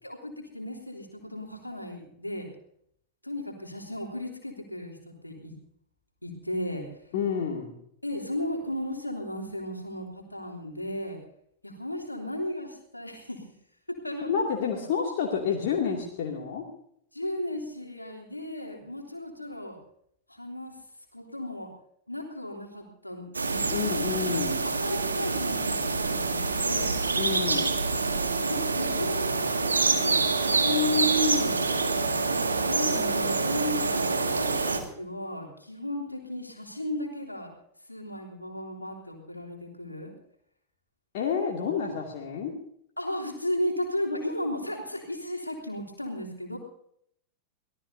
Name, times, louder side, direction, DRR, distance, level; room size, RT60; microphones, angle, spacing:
voice 1, 0.0-2.5 3.2-5.6 6.2-6.9 8.0-11.2 11.6-13.5 13.9-14.4 17.1-19.8 20.3-20.8 21.1-21.7 22.1-23.7 24.5-27.0 28.5-29.3 30.0-30.2 30.5-31.7 32.5-37.5 37.9-40.1 43.0-46.6, left 1 dB, 85° left, 1 dB, 3.1 m, -34 dB
voice 2, 7.1-7.7 14.3-16.7 23.6-24.6 27.2-27.9 41.1-42.6, left 6 dB, 50° left, -1 dB, 2.5 m, -29 dB
sound 1, 23.3-34.8, right 3 dB, 80° right, 2.0 m, -26 dB
24.5 x 17.5 x 2.7 m, 0.68 s
figure-of-eight pair, 90°, 0 cm